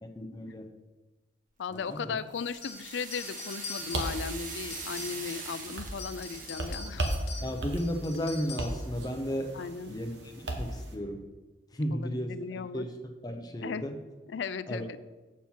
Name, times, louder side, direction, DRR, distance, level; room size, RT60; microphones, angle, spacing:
voice 1, 0.2-0.7 1.7-2.2 7.4-9.6 9.9-11.3 11.7-12.4 12.7-12.9 13.2-14.0 14.7-14.8, equal, 20° left, 5 dB, 0.7 m, -34 dB
voice 2, 1.6-7.1 9.5-10.0 11.9-12.8 13.6-13.8 14.3-15.0, left 5 dB, 85° left, 14 dB, 0.4 m, -37 dB
sound 1, 1.7-6.9, right 4 dB, 45° right, 1.1 m, -42 dB
sound 2, 2.6-5.5 5.9-8.9, left 4 dB, 70° left, 1.5 m, -44 dB
sound 3, 3.8-10.9, right 1 dB, 75° right, 1.2 m, -37 dB
7.3 x 7.1 x 4.4 m, 1.2 s
head